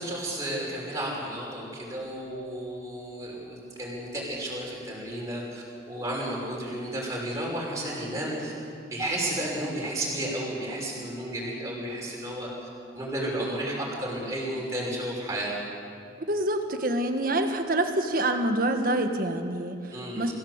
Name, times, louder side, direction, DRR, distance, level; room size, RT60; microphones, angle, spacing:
voice 1, 0.0-8.5 8.9-12.7 12.9-15.5 19.9-20.3, right 1 dB, 15° right, -4 dB, 5.8 m, -32 dB
voice 2, 16.3-19.7 20.2-20.3, right 1 dB, 45° right, 5 dB, 1.6 m, -26 dB
25.0 x 16.0 x 8.1 m, 2.5 s
head